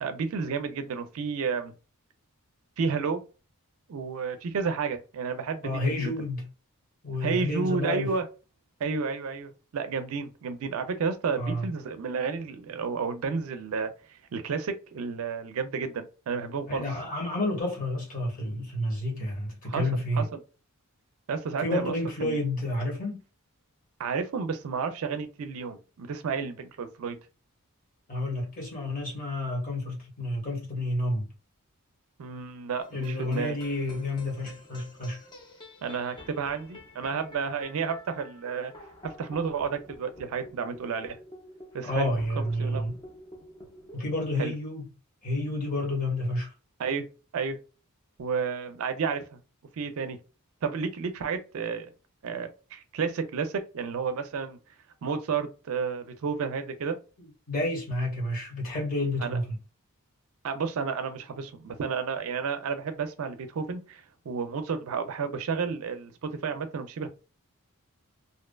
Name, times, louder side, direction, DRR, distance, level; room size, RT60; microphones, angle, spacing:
voice 1, 0.0-1.8 2.8-3.2 3.9-6.1 7.2-8.3 8.8-16.8 19.7-20.4 21.3-21.9 22.2-22.4 24.0-27.2 32.2-33.6 35.8-38.7 39.0-41.2 41.7-42.1 42.6-42.9 44.4-44.5 46.8-47.0 47.3-47.6 48.2-49.4 49.7-50.2 50.6-51.9 52.2-54.6 55.0-57.0 59.2-59.4 60.4-67.1, right 5 dB, 65° right, 0.4 m, -31 dB
voice 2, 5.6-6.4 7.0-8.2 11.4-11.7 16.7-20.2 21.6-23.2 28.1-31.3 32.9-35.2 41.8-42.9 43.9-44.9 45.2-46.5 57.5-59.6, left 1 dB, 35° left, 1.2 m, -30 dB
sound 1, 32.8-44.3, left 1 dB, 20° left, 0.5 m, -49 dB
2.6 x 2.2 x 2.2 m
head